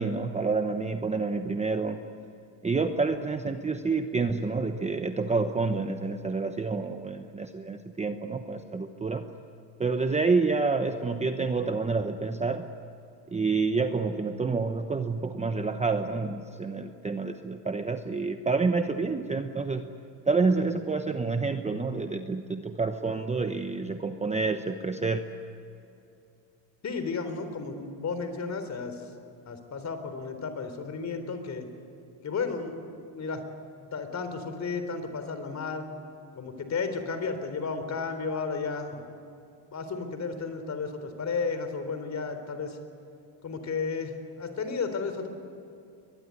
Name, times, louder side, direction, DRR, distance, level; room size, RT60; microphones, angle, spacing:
voice 1, 0.0-2.0 2.6-9.3 9.8-12.7 13.3-19.9 20.3-25.3, right 4 dB, 15° right, 7 dB, 0.9 m, -28 dB
voice 2, 26.8-29.0 29.5-31.7 32.2-33.4 33.9-35.9 36.4-39.1 39.7-42.8 43.4-45.3, left 4 dB, 35° left, 8 dB, 3.7 m, -33 dB
23.0 x 21.0 x 9.7 m, 2.7 s
cardioid pair, 130°, 50 cm